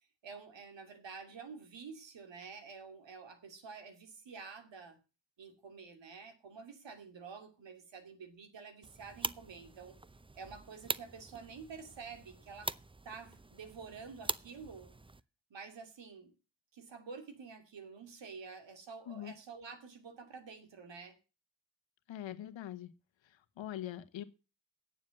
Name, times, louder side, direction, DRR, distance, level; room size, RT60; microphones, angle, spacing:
voice 1, 0.2-5.0 5.4-9.9 10.3-12.7 13.0-14.9 15.5-16.3 16.7-21.2, right 5 dB, 75° right, 2.7 m, -49 dB
sound 1, 8.8-15.2, right 3 dB, 10° right, 0.6 m, -43 dB
voice 2, 22.1-22.9 23.6-24.2, left 12 dB, 90° left, 1.2 m, -42 dB
10.0 x 7.3 x 7.5 m
supercardioid pair, 45°, 44 cm